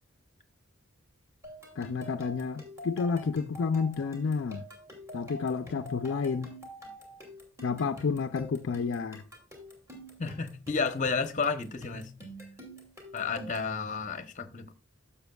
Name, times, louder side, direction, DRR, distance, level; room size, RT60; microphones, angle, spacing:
sound 1, 1.4-13.7, equal, 15° right, 2.5 m, -46 dB
voice 1, 1.8-4.6 5.1-6.5 7.6-9.2, left 5 dB, 60° left, 0.4 m, -30 dB
voice 2, 10.2-12.1 13.1-14.7, left 4 dB, 35° left, 0.8 m, -31 dB
12.0 x 6.9 x 2.3 m
head